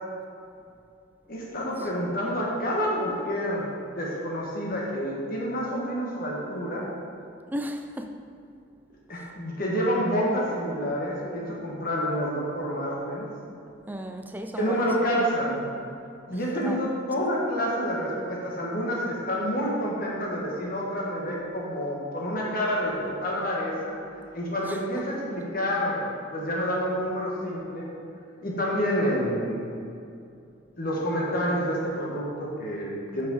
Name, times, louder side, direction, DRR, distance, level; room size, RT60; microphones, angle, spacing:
voice 1, 1.3-3.7 4.0-6.9 9.1-13.3 14.6-15.7 16.3-24.0 24.3-26.0 26.3-27.9 28.4-29.7 30.8-33.3, equal, 45° left, -3 dB, 1.4 m, -28 dB
voice 2, 7.5-8.2 13.9-14.9 16.6-16.9 24.7-25.0, equal, 10° right, 5 dB, 0.4 m, -35 dB
7.8 x 5.9 x 4.0 m, 2.5 s
head